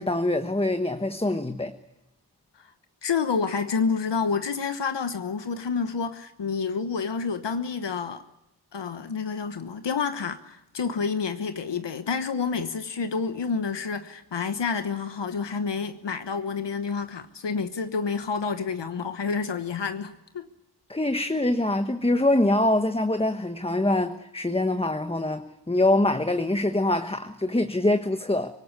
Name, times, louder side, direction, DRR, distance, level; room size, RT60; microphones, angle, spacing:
voice 1, 0.0-1.7 20.9-28.5, left 1 dB, 15° left, 1.2 m, -24 dB
voice 2, 3.0-8.2 8.7-20.5, left 5 dB, 85° left, 1.2 m, -29 dB
25.5 x 18.5 x 9.6 m
wide cardioid pair, 65°, 41 cm